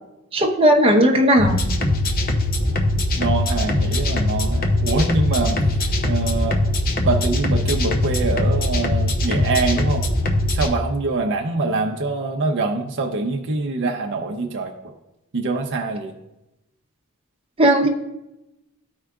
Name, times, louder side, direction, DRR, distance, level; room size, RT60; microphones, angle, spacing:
voice 1, 0.3-1.6 17.6-17.9, right 1 dB, 25° right, 0 dB, 0.9 m, -16 dB
sound 1, 1.4-10.7, left 1 dB, 40° left, 0.7 m, -21 dB
voice 2, 3.2-5.8 6.0-6.6 7.1-10.1 10.5-14.9 15.3-16.1, right 3 dB, 55° right, 2 dB, 0.7 m, -24 dB
13.5 x 4.8 x 2.4 m, 0.93 s
head